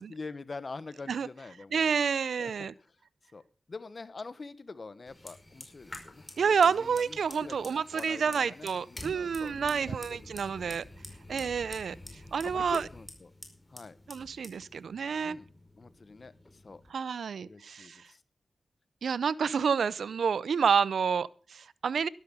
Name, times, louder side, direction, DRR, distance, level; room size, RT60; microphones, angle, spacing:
voice 1, 0.0-2.0 2.4-2.5 2.8-3.0 3.3-10.8 11.3-11.5 12.4-13.3 13.7-14.0 15.2-15.5 15.7-16.8 17.4-18.2, left 3 dB, 55° left, 15 dB, 1.3 m, -45 dB
voice 2, 1.7-2.7 6.4-10.8 11.3-12.0 12.3-12.8 14.1-15.4 16.9-18.0 19.0-22.1, right 6 dB, 85° right, 19 dB, 0.5 m, -29 dB
Fire, 5.1-16.9, left 1 dB, 25° left, 5.0 m, -49 dB
12.5 x 12.0 x 5.5 m, 0.38 s
cardioid pair, 45°, 0 cm